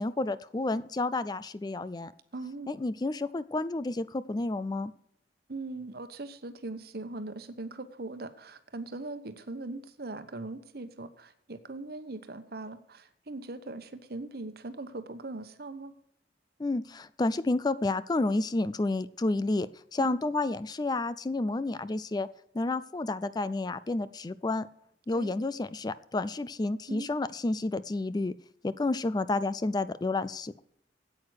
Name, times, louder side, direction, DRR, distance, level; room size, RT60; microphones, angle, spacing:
voice 1, 0.0-2.1 2.7-4.9 16.6-22.3 22.5-24.7 25.1-28.3 28.6-30.6, left 2 dB, 25° left, 15 dB, 0.4 m, -30 dB
voice 2, 2.3-2.7 5.5-15.9 20.0-20.2 25.1-25.3 26.9-27.1, right 2 dB, 60° right, 10 dB, 1.1 m, -40 dB
9.1 x 8.6 x 6.4 m, 0.72 s
head